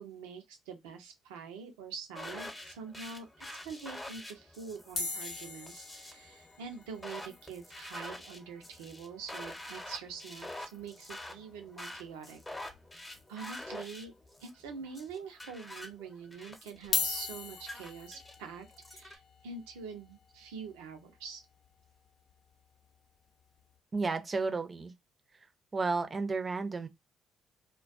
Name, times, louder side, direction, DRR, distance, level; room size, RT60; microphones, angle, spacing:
voice 1, 0.0-12.4 13.3-14.1 14.4-21.4, right 5 dB, 85° right, 0.6 m, -45 dB
sound 1, 2.1-19.2, left 1 dB, 20° left, 0.9 m, -47 dB
sound 2, 4.9-9.3 9.6-9.7 9.9-10.0 10.4-10.6 11.9-12.0 12.7-13.2 13.7-13.8 14.7-14.8 16.8-22.8 23.4-23.7, left 4 dB, 60° left, 0.6 m, -40 dB
voice 2, 23.9-24.9 25.7-26.9, right 3 dB, 35° right, 0.6 m, -32 dB
2.2 x 2.2 x 2.5 m
hypercardioid pair, 50°, 0 cm